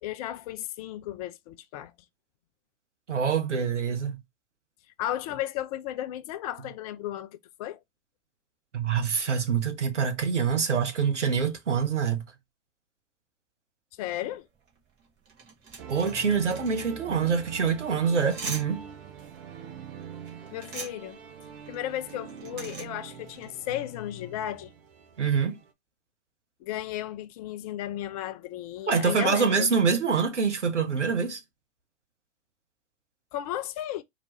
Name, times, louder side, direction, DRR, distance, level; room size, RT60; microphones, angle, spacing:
voice 1, 0.0-1.9 5.0-7.8 14.0-14.5 20.5-21.2 21.7-24.7 26.6-29.7 33.3-34.0, left 12 dB, 35° left, 0.4 m, -34 dB
voice 2, 3.1-4.2 8.7-12.2 15.9-18.8 25.2-25.6 28.9-31.4, right 6 dB, 80° right, 1.1 m, -25 dB
sound 1, 14.4-23.7, right 4 dB, 35° right, 1.7 m, -43 dB
sound 2, 15.8-25.7, right 7 dB, 60° right, 1.1 m, -44 dB
4.5 x 3.0 x 2.6 m
figure-of-eight pair, 100°, 35 cm